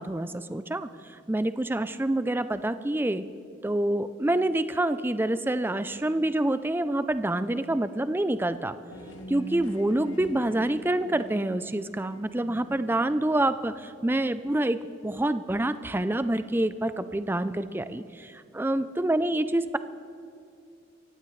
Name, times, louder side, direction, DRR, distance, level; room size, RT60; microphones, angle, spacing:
voice 1, 0.0-3.2 3.6-8.8 9.3-19.8, right 1 dB, 10° right, 12 dB, 0.4 m, -27 dB
sound 1, 8.9-13.8, right 1 dB, 85° left, 2.1 m, -43 dB
28.5 x 15.5 x 3.2 m, 2.5 s
head